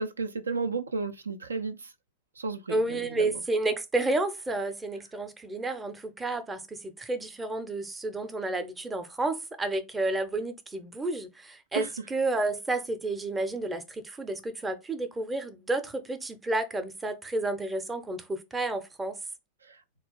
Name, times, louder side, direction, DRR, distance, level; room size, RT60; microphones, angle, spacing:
voice 1, 0.0-1.9 2.4-3.3 11.7-11.9 19.7-19.8, right 4 dB, 75° right, 0.3 m, -33 dB
voice 2, 2.7-19.2, right 2 dB, 10° right, 0.6 m, -31 dB
3.9 x 2.4 x 3.7 m
figure-of-eight pair, 90°, 0 cm